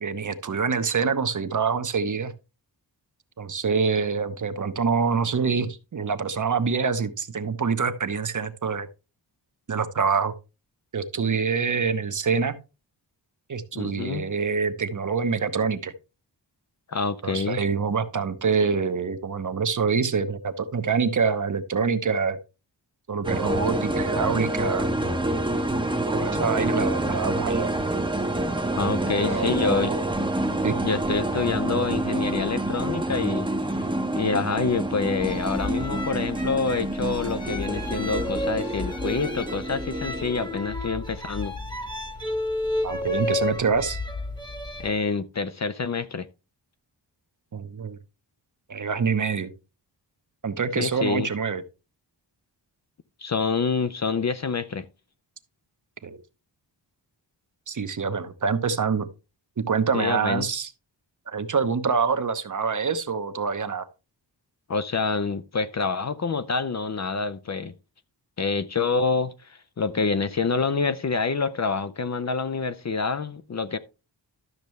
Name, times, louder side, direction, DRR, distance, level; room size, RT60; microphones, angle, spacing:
voice 1, 0.0-2.3 3.4-8.9 9.7-10.3 10.9-12.5 13.5-15.9 17.2-22.4 23.1-24.9 26.1-27.7 29.2-30.0 30.6-30.8 42.8-44.0 47.5-48.0 48.7-49.5 50.4-51.6 56.0-56.2 57.7-59.1 59.6-60.7 61.3-63.8, right 5 dB, 45° right, 0.9 m, -26 dB
voice 2, 13.7-14.3 16.9-17.6 28.8-30.0 30.8-33.8 34.1-41.6 44.8-46.3 50.8-51.3 53.2-54.9 59.9-60.5 64.7-67.7 68.4-73.8, left 4 dB, 40° left, 0.5 m, -27 dB
sound 1, 23.2-40.6, right 1 dB, 10° right, 0.8 m, -27 dB
sound 2, 35.2-44.9, left 2 dB, 10° left, 1.1 m, -32 dB
12.0 x 6.6 x 3.1 m
wide cardioid pair, 160°, 44 cm